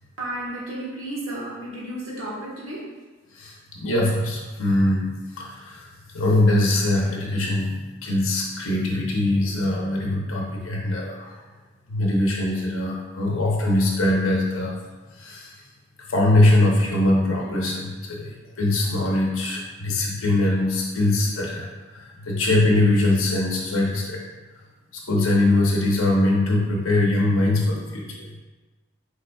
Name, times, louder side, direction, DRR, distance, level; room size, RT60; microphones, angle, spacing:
voice 1, 0.2-2.9, right 1 dB, 75° right, -5 dB, 1.3 m, -32 dB
voice 2, 3.4-5.1 5.4-5.8 6.1-7.7 8.0-11.3 11.9-14.7 15.2-15.5 16.1-21.7 21.9-24.2 25.1-28.2, left 1 dB, 75° left, -2 dB, 0.7 m, -22 dB
5.1 x 4.0 x 2.2 m, 1.2 s
head